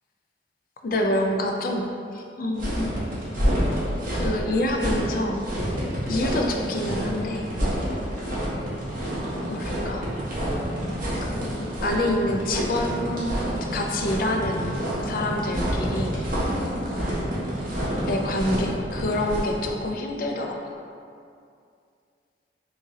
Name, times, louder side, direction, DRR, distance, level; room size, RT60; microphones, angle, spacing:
voice 1, 0.8-1.9 2.1-2.9 4.1-5.4 6.1-7.5 9.5-10.1 11.2-13.3 13.7-16.1 18.1-20.7, left 1 dB, 50° left, 2 dB, 0.3 m, -27 dB
sound 1, 2.6-19.6, equal, 50° right, 0.8 m, -28 dB
3.8 x 2.9 x 2.7 m, 2.4 s
head